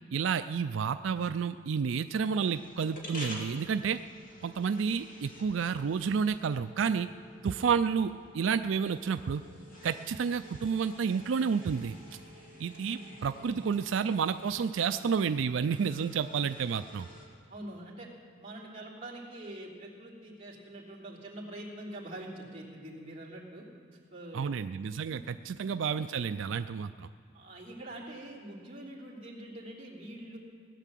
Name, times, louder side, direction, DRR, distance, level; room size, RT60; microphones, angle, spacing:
voice 1, 0.1-4.0 4.4-7.1 7.4-9.4 9.8-12.0 12.6-17.1 24.3-27.1, right 6 dB, 70° right, 11 dB, 0.4 m, -30 dB
sound 1, 2.4-17.3, left 1 dB, 45° left, 2.7 m, -50 dB
voice 2, 12.9-13.9 17.5-18.1 18.4-23.6 24.1-24.5 25.1-25.2 25.5-25.7 27.3-30.4, right 1 dB, 30° right, -4 dB, 3.1 m, -45 dB
18.0 x 10.0 x 7.5 m, 2.3 s
head